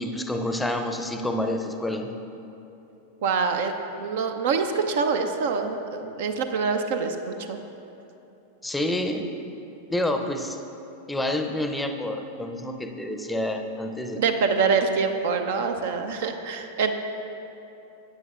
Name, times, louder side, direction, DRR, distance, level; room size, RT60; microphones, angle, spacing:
voice 1, 0.0-2.1 8.6-9.3 9.9-10.6 11.1-14.2, left 1 dB, 5° left, 5 dB, 0.6 m, -28 dB
voice 2, 3.2-7.6 14.2-16.9, right 5 dB, 55° right, 6 dB, 0.5 m, -25 dB
14.0 x 9.2 x 2.4 m, 2.9 s
figure-of-eight pair, 90°, 0 cm